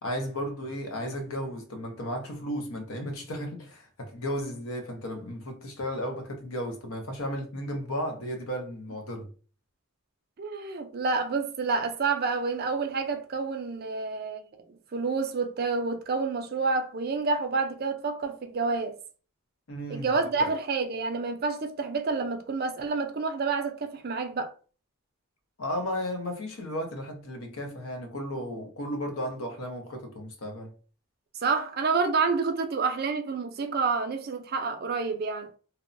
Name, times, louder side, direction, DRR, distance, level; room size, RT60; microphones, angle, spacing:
voice 1, 0.0-9.3 19.7-20.1 20.4-20.5 25.6-30.7, equal, 80° left, 0.7 m, -34 dB
voice 2, 10.4-14.4 14.9-19.0 19.9-24.5 31.4-35.5, right 4 dB, 45° right, 0.4 m, -28 dB
2.9 x 2.0 x 2.5 m
head